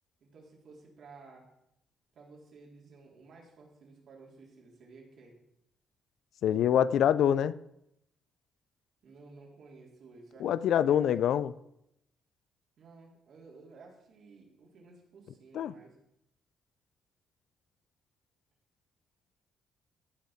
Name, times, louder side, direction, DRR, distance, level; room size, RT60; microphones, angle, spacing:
voice 1, 0.2-1.5 2.1-5.4 9.0-11.2 12.8-16.0, right 3 dB, 65° right, -1 dB, 3.6 m, -54 dB
voice 2, 6.4-7.5 10.4-11.5 15.5-15.7, left 9 dB, 75° left, 17 dB, 0.4 m, -25 dB
15.5 x 5.3 x 5.0 m, 0.80 s
cardioid pair, 90°, 0 cm